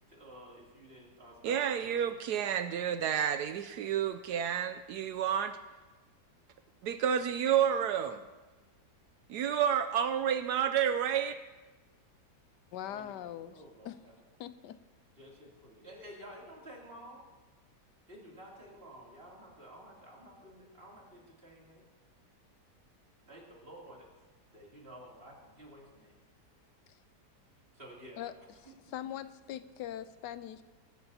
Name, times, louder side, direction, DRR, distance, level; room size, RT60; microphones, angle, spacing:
voice 1, 0.1-2.2 12.8-14.1 15.2-17.3 18.1-21.8 23.3-24.1 24.5-26.2 27.7-28.3 28.6-28.9, right 1 dB, 35° right, -3 dB, 3.0 m, -52 dB
voice 2, 1.4-5.6 6.8-8.2 9.3-11.3, right 9 dB, 75° right, 10 dB, 1.1 m, -30 dB
voice 3, 12.7-13.5 13.8-14.0 14.4-14.8 28.2-28.3 28.9-30.6, left 11 dB, 85° left, 12 dB, 1.3 m, -41 dB
23.5 x 12.5 x 2.8 m, 1.3 s
omnidirectional pair, 1.8 m